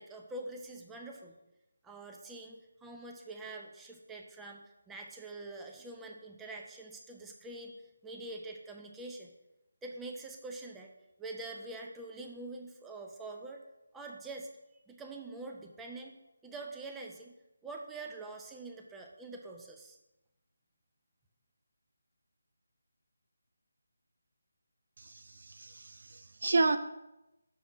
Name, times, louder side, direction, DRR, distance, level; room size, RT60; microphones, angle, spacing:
voice 1, 0.0-1.4 1.8-7.7 8.0-9.3 9.8-10.9 11.2-13.6 13.9-14.5 14.9-16.1 16.4-17.3 17.6-20.0, right 2 dB, 5° right, 1 dB, 0.5 m, -45 dB
voice 2, 25.0-26.8, right 3 dB, 55° right, 9 dB, 0.4 m, -31 dB
6.2 x 3.5 x 6.0 m, 0.94 s
figure-of-eight pair, 155°, 0 cm